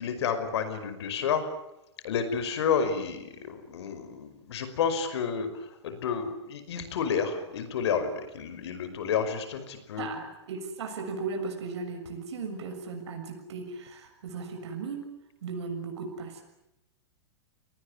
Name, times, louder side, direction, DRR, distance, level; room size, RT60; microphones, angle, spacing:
voice 1, 0.0-1.4 2.0-10.1, left 6 dB, 70° left, 9 dB, 5.5 m, -30 dB
voice 2, 10.0-15.1 15.4-16.4, right 4 dB, 75° right, 4 dB, 6.8 m, -36 dB
29.0 x 19.5 x 10.0 m, 0.90 s
hypercardioid pair, 140°, 14 cm